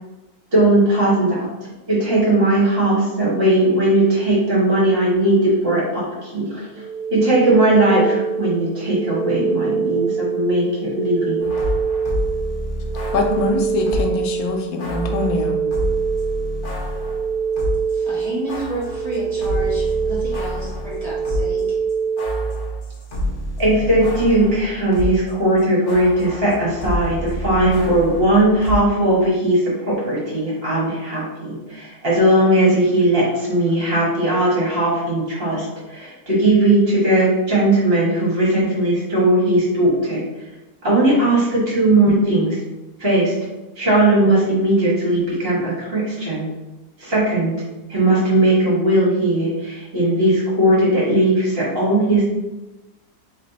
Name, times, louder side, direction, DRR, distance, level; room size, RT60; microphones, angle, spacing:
voice 1, 0.5-1.5 1.9-6.7 7.1-11.5 23.6-40.2 40.8-42.6 43.0-43.3 43.8-46.5 47.0-47.6 47.9-52.3, right 1 dB, 40° right, -6 dB, 1.5 m, -18 dB
sound 1, 6.7-22.5, right 6 dB, 80° right, 1.1 m, -25 dB
sound 2, 11.4-14.2 14.8-17.9 18.2-25.3 25.6-28.8, equal, 45° left, 0.8 m, -28 dB
voice 2, 13.1-15.6, left 3 dB, 85° left, 2 dB, 1.1 m, -23 dB
voice 3, 17.9-21.6, right 1 dB, 25° right, -7 dB, 1.6 m, -30 dB
3.3 x 3.0 x 3.9 m, 1.1 s
omnidirectional pair, 1.6 m